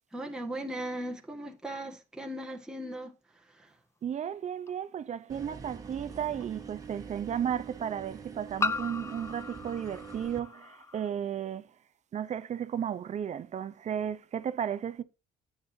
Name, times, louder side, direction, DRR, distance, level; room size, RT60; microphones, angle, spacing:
voice 1, 0.1-3.1 3.5-3.7, right 1 dB, 5° right, 1.7 m, -38 dB
voice 2, 4.0-11.7 12.1-15.0, right 9 dB, 45° right, 0.7 m, -34 dB
sound 1, 4.7-4.8 6.4-6.5 8.6-11.1, left 4 dB, 15° left, 0.4 m, -36 dB
sound 2, 5.3-10.4, right 6 dB, 20° right, 1.8 m, -45 dB
10.5 x 9.0 x 2.7 m
cardioid pair, 110°, 17 cm